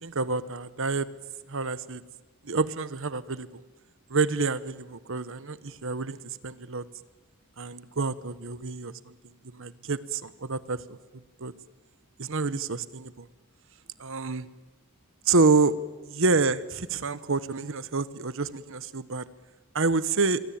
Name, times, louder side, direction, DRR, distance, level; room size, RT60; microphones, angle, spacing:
voice 1, 0.0-1.1 1.5-2.0 2.4-3.5 4.1-6.8 7.6-9.2 9.5-10.8 11.4-11.5 12.2-13.3 14.0-14.5 15.3-15.7 16.1-19.3 19.7-20.4, right 4 dB, 60° right, 15 dB, 1.1 m, -27 dB
26.5 x 23.5 x 8.8 m, 1.2 s
head